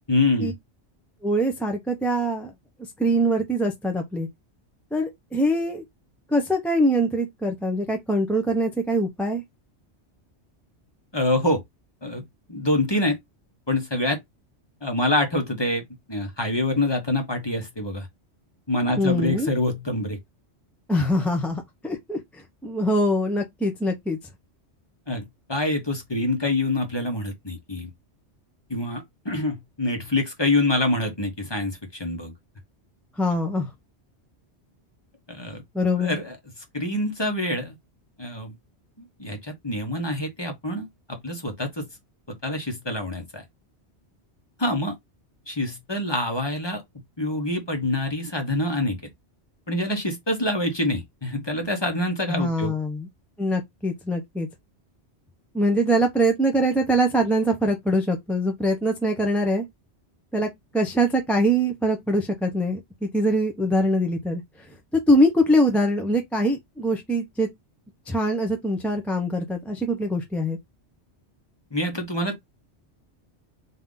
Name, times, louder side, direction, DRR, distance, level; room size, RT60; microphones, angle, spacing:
voice 1, 0.1-0.5 11.1-11.6 12.0-13.2 13.7-14.2 14.8-18.1 18.7-20.2 25.1-27.9 28.7-32.3 35.3-35.6 36.0-36.4 36.7-37.8 38.2-38.5 39.0-41.9 42.3-43.4 44.6-44.9 45.5-46.8 47.2-49.0 49.7-52.7 71.7-72.4, left 1 dB, 25° left, 1.0 m, -26 dB
voice 2, 1.2-2.5 3.0-4.3 4.9-5.8 6.3-9.4 19.0-19.5 20.9-22.2 22.6-24.2 33.2-33.7 35.7-36.2 52.3-53.1 53.4-54.5 55.5-59.6 60.3-60.5 60.7-64.4 65.1-67.5 68.1-70.6, equal, ahead, 0.6 m, -23 dB
3.7 x 2.8 x 3.7 m
omnidirectional pair, 1.2 m